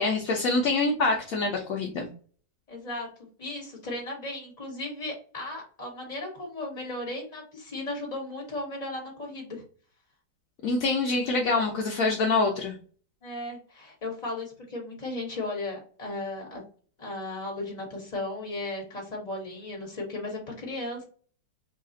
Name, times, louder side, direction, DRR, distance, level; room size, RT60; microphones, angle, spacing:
voice 1, 0.0-2.1 10.6-12.7, left 3 dB, 70° left, 1 dB, 0.8 m, -25 dB
voice 2, 2.7-3.1 3.4-9.6 13.2-16.6 17.0-21.0, left 2 dB, 25° left, -1 dB, 1.3 m, -35 dB
3.3 x 2.3 x 3.8 m, 0.42 s
omnidirectional pair, 2.0 m